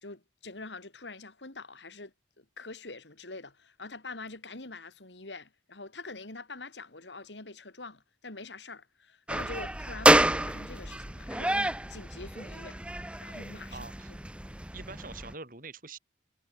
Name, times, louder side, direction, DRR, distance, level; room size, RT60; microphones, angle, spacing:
voice 1, 0.0-12.8 13.2-13.9, left 3 dB, 90° left, 3.2 m, -45 dB
sound 1, 9.3-15.3, right 1 dB, 5° right, 0.9 m, -28 dB
voice 2, 13.7-14.1 14.7-16.0, right 4 dB, 50° right, 4.4 m, -44 dB
head